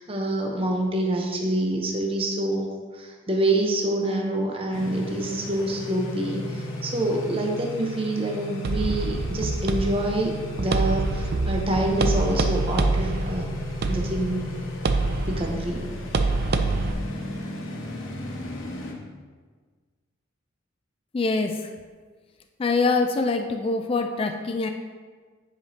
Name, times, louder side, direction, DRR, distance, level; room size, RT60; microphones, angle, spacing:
voice 1, 0.0-13.5 13.9-14.5 15.3-15.9, right 1 dB, 25° right, 1 dB, 0.8 m, -26 dB
sound 1, 4.7-18.9, equal, 75° left, 1.2 m, -35 dB
sound 2, 8.6-16.9, right 3 dB, 50° right, 0.4 m, -26 dB
voice 2, 21.1-21.5 22.6-24.7, left 3 dB, 25° left, 5 dB, 0.3 m, -24 dB
10.0 x 5.0 x 2.8 m, 1.5 s
head